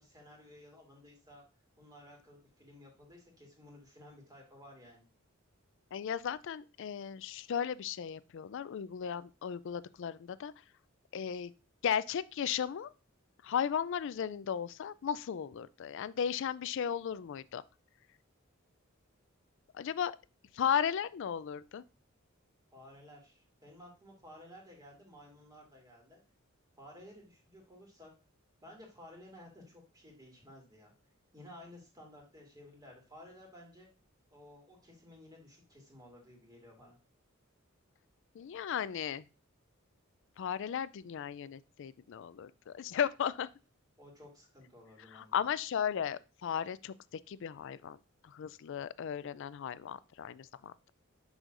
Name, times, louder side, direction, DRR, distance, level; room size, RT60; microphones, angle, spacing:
voice 1, 0.0-1.4 1.8-5.1 22.7-26.2 26.8-28.1 28.6-30.9 31.3-33.9 34.3-37.0 44.0-45.4, left 1 dB, 20° right, 2.4 m, -55 dB
voice 2, 5.9-10.5 11.1-11.5 11.8-12.9 13.4-17.6 19.7-20.1 20.5-21.8 38.3-39.2 40.4-43.5 45.1-46.9 47.3-48.0 48.2-50.7, left 8 dB, 65° left, 0.3 m, -35 dB
6.4 x 6.3 x 2.5 m
head